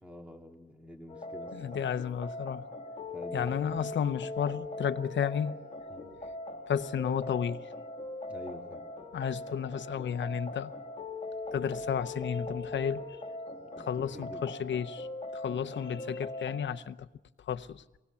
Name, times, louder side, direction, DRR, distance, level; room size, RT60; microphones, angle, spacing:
voice 1, 0.0-1.8 3.1-3.7 5.9-6.1 8.3-8.8 13.7-14.4, left 1 dB, 5° right, 2.4 m, -47 dB
sound 1, 1.1-16.7, left 2 dB, 35° left, 2.3 m, -40 dB
voice 2, 1.5-2.6 3.3-5.6 6.7-7.7 9.1-10.7 11.5-13.0 13.8-15.1 15.3-17.1 17.5-17.8, left 8 dB, 75° left, 0.9 m, -32 dB
24.5 x 19.5 x 7.1 m
wide cardioid pair, 145°, 19 cm